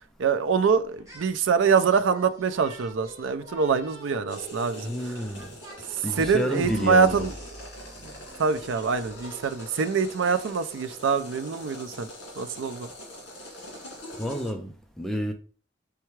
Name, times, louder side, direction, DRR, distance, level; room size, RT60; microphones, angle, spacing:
voice 1, 0.2-4.9 6.2-7.3 8.0-8.1 8.4-12.1 12.4-12.9, right 5 dB, 75° right, 0.4 m, -24 dB
sound 1, 0.9-1.3 1.6-9.6, equal, 15° right, 1.0 m, -46 dB
sound 2, 4.3-14.5, equal, 60° left, 2.1 m, -43 dB
voice 2, 4.8-5.5 6.0-7.3 14.2-15.3, equal, ahead, 0.4 m, -30 dB
4.5 x 3.4 x 3.1 m
head